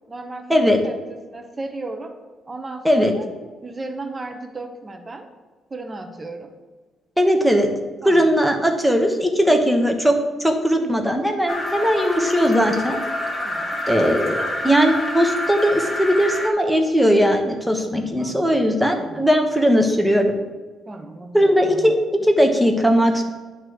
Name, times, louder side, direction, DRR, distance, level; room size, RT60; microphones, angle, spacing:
voice 1, 0.1-2.2 2.5-3.3 3.6-5.3 5.7-6.5 8.0-8.3 9.5-9.6 10.8-11.1 13.4-13.8 17.8-18.7 19.0-19.2 20.8-21.9, right 2 dB, 30° right, 6 dB, 1.0 m, -35 dB
voice 2, 7.2-7.7 8.0-13.0 13.9-20.3 21.3-23.2, equal, 5° right, 3 dB, 1.2 m, -18 dB
sound 1, 11.5-16.5, left 1 dB, 20° left, 1.5 m, -27 dB
9.1 x 3.1 x 6.2 m, 1.3 s
supercardioid pair, 55°, 0 cm